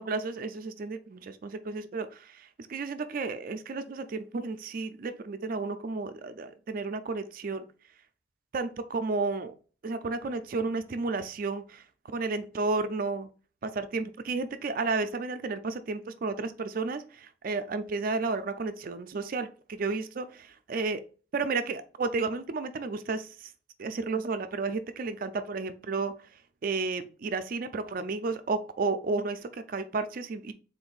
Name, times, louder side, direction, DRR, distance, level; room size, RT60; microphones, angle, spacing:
voice 1, 0.0-7.6 8.5-9.5 9.8-11.8 12.1-13.3 13.6-21.0 21.3-23.5 23.8-26.1 26.6-30.5, right 3 dB, 45° right, 10 dB, 0.4 m, -32 dB
3.8 x 2.6 x 3.9 m, 0.37 s
head